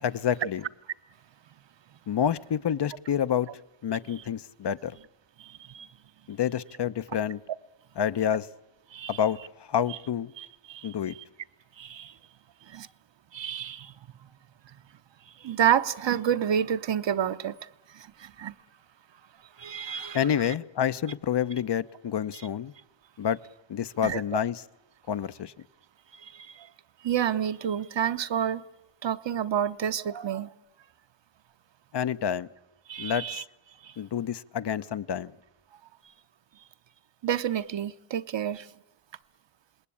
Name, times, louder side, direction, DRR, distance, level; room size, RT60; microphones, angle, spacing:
voice 1, 0.0-0.6 2.1-3.5 3.8-5.0 6.3-7.4 8.0-8.5 9.1-9.4 9.7-10.3 10.8-11.1 20.1-22.7 23.2-23.4 23.7-24.6 25.1-25.5 31.9-32.5 33.0-33.4 34.0-35.3, left 9 dB, 55° left, 0.8 m, -28 dB
voice 2, 5.4-5.9 8.9-9.2 10.4-10.9 11.8-12.1 12.7-12.9 13.3-13.9 15.4-17.6 17.9-18.5 19.6-20.5 22.3-22.4 24.0-24.2 26.1-26.7 27.0-28.6 29.0-30.5 32.9-33.4 33.8-33.9 37.2-38.7, right 9 dB, 60° right, 0.9 m, -29 dB
27.5 x 19.5 x 8.6 m
cardioid pair, 65°, 50 cm